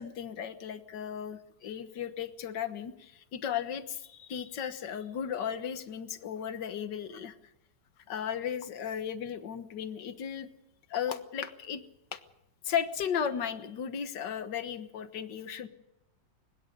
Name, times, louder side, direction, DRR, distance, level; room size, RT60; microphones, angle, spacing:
voice 1, 0.0-7.4 8.1-10.5 10.9-11.8 12.1-12.2 12.6-15.7, left 8 dB, 75° left, 10 dB, 1.9 m, -35 dB
24.5 x 21.0 x 5.5 m, 0.87 s
omnidirectional pair, 2.0 m